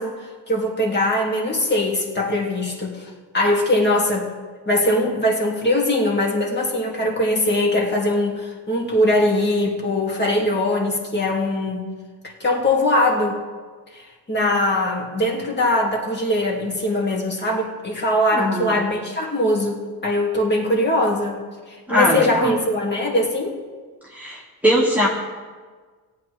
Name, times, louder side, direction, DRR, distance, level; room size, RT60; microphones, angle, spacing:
voice 1, 0.0-4.3 4.7-11.9 12.4-13.4 13.9-21.4 21.7-23.5, left 1 dB, 25° left, -3 dB, 2.3 m, -21 dB
voice 2, 18.3-18.7 21.9-22.6 24.1-25.1, equal, 5° right, -4 dB, 1.6 m, -20 dB
18.0 x 9.4 x 3.3 m, 1.5 s
cardioid pair, 115°, 38 cm